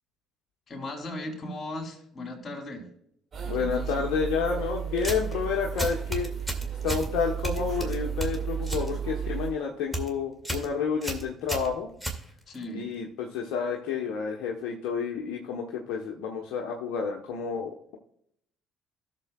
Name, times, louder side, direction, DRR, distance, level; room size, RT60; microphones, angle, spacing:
voice 1, 0.7-2.9 3.5-3.9 12.5-12.9, left 1 dB, 40° left, 4 dB, 3.5 m, -37 dB
sound 1, 3.3-9.5, right 8 dB, 45° right, 2.2 m, -33 dB
voice 2, 3.4-6.3 6.8-11.9 12.7-18.0, left 6 dB, 70° left, 0 dB, 1.1 m, -30 dB
sound 2, 5.0-5.4 5.8-7.1 7.4-8.9 9.2-9.5 9.8-10.1 10.4-10.7 11.0-12.6, right 2 dB, 5° right, 2.3 m, -33 dB
16.5 x 6.8 x 2.4 m, 0.70 s
hypercardioid pair, 50°, 0 cm